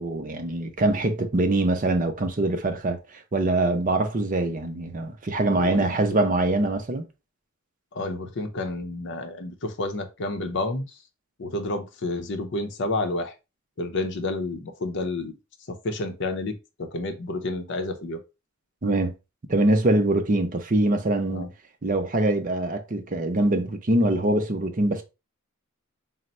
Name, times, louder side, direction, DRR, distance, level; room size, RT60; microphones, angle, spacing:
voice 1, 0.0-7.0 18.8-19.1 19.5-21.5 21.8-25.0, right 2 dB, 35° right, 0.6 m, -23 dB
voice 2, 5.6-6.0 7.9-11.0 11.4-13.3 13.8-15.4 15.7-18.2 21.3-21.5, left 2 dB, 55° left, 0.6 m, -30 dB
3.9 x 2.0 x 4.2 m
head